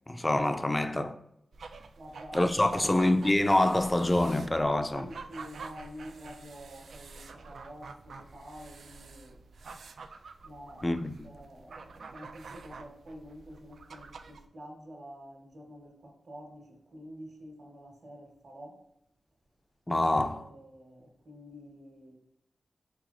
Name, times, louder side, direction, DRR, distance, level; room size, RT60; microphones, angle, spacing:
voice 1, 0.1-1.2 2.3-5.1 10.8-11.3 19.9-20.5, left 1 dB, 15° left, 0.3 m, -26 dB
sound 1, 1.5-14.4, right 4 dB, 85° right, 0.3 m, -48 dB
voice 2, 1.9-2.9 4.5-9.4 10.4-10.8 11.2-18.8 20.1-22.1, equal, 55° right, 1.3 m, -47 dB
4.7 x 4.0 x 2.5 m
wide cardioid pair, 145°, 0 cm